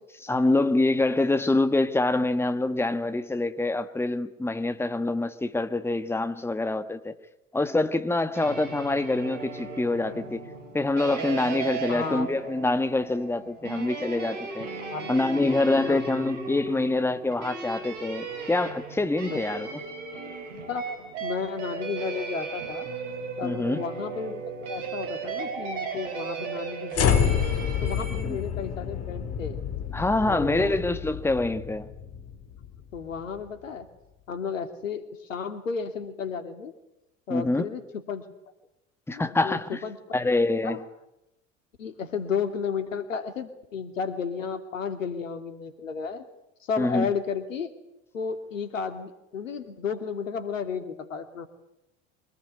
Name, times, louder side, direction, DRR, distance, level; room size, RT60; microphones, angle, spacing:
voice 1, 0.3-7.1 7.5-10.5 10.7-14.7 15.1-19.8 23.4-23.8 28.2-28.4 29.9-31.9 37.3-37.7 39.1-39.8 40.1-40.8 46.8-47.1, left 2 dB, 5° left, 1.6 m, -25 dB
sound 1, 8.3-28.2, right 5 dB, 65° right, 5.1 m, -36 dB
voice 2, 11.9-12.3 14.9-15.1 15.4-15.5 15.8-16.0 19.3-19.4 20.7-22.9 23.4-24.4 24.7-27.3 27.8-29.6 30.3-30.8 32.9-33.9 34.3-36.7 37.3-37.8 38.1-38.2 39.1-40.0 40.6-40.8 41.8-46.2 46.6-47.7 48.1-51.5, left 6 dB, 75° left, 2.7 m, -33 dB
sound 2, 26.9-33.2, left 8 dB, 40° left, 3.3 m, -29 dB
25.0 x 19.0 x 9.9 m
figure-of-eight pair, 70°, 39 cm